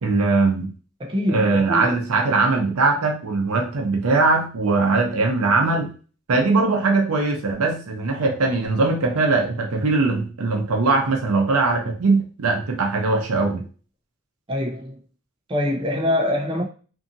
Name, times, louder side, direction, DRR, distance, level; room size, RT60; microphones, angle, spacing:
voice 1, 0.0-0.7 1.3-5.9 6.3-13.6, right 3 dB, 85° right, 0.7 m, -20 dB
voice 2, 1.0-2.0 14.5-15.0 15.5-16.6, left 1 dB, 25° right, 0.5 m, -24 dB
2.7 x 2.6 x 2.6 m
head